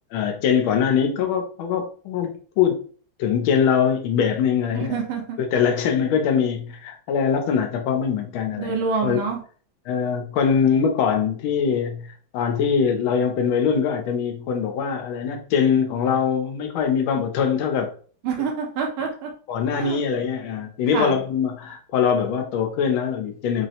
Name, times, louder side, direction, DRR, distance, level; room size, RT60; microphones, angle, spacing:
voice 1, 0.1-2.8 3.2-4.9 5.5-8.8 9.0-9.2 9.9-12.1 12.3-17.9 19.5-23.7, left 7 dB, 85° left, 5 dB, 1.5 m, -22 dB
voice 2, 4.7-5.4 8.5-9.4 18.2-19.3 19.7-20.0 20.9-21.2, right 5 dB, 90° right, 1 dB, 1.6 m, -27 dB
4.1 x 2.0 x 2.8 m, 0.43 s
omnidirectional pair, 2.2 m